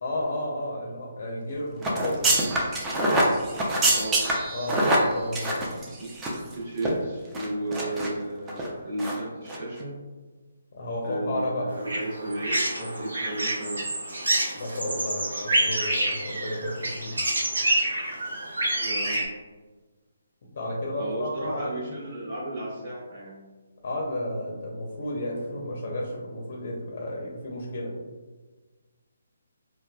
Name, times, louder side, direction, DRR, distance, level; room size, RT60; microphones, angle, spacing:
voice 1, 0.0-2.5 4.5-5.9 10.7-11.7 12.8-12.9 14.6-17.2 20.5-21.9 23.8-28.0, left 1 dB, 55° left, -3 dB, 0.6 m, -32 dB
sound 1, 1.8-6.5 6.8-6.9 7.3-8.1 8.5-8.7 9.0-9.2 9.5-9.6, right 1 dB, 15° right, 0.5 m, -25 dB
voice 2, 3.9-4.2 6.0-6.1 6.5-9.9 11.0-13.8 18.8-19.3 21.0-23.4, right 1 dB, 50° right, -6 dB, 1.1 m, -34 dB
sound 2, 11.7-19.2, right 1 dB, 85° right, 0.8 m, -28 dB
4.0 x 2.2 x 2.3 m, 1.3 s
figure-of-eight pair, 150°, 0 cm